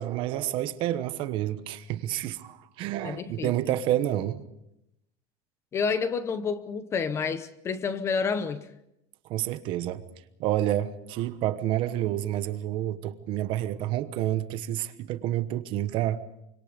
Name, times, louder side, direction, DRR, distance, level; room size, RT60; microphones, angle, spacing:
voice 1, 0.0-4.4 9.2-10.0 10.4-16.2, right 13 dB, 40° right, 1.1 m, -29 dB
voice 2, 3.0-3.5 5.7-8.7, left 5 dB, 20° left, 0.8 m, -29 dB
26.0 x 25.0 x 5.2 m
cardioid pair, 175°, 13 cm